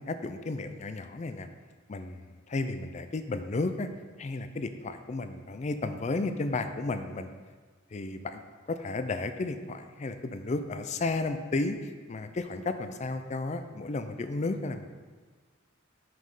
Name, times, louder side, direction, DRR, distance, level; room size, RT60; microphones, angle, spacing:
voice 1, 0.0-1.5 1.9-3.9 4.2-7.3 7.9-8.4 8.7-14.9, left 3 dB, 35° left, 9 dB, 0.4 m, -33 dB
5.9 x 5.1 x 5.4 m, 1.4 s
head